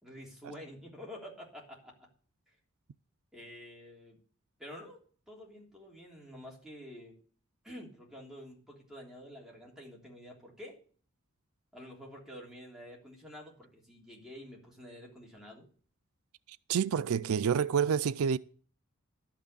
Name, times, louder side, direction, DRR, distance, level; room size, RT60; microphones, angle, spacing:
voice 1, 0.0-1.9 3.3-4.2 4.6-5.0 5.3-7.1 7.6-10.8 11.7-15.7, left 1 dB, ahead, 3.3 m, -49 dB
voice 2, 16.7-18.4, right 7 dB, 85° right, 0.4 m, -28 dB
12.0 x 6.0 x 6.8 m
head